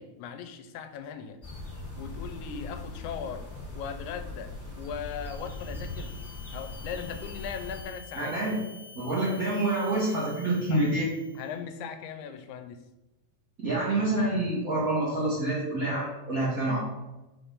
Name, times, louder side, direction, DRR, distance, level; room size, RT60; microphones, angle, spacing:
voice 1, 0.0-1.4 2.0-3.5 3.7-6.2 6.5-8.3 10.7-10.8 11.4-12.8, left 7 dB, 85° left, 9 dB, 2.0 m, -39 dB
sound 1, 1.4-7.8, left 2 dB, 15° left, 0.5 m, -40 dB
sound 2, 5.0-11.6, left 6 dB, 65° left, 1.1 m, -50 dB
voice 2, 8.2-8.6 8.9-11.1 13.6-16.8, right 2 dB, 70° right, -7 dB, 0.8 m, -27 dB
4.8 x 3.5 x 5.5 m, 1.0 s
omnidirectional pair, 3.5 m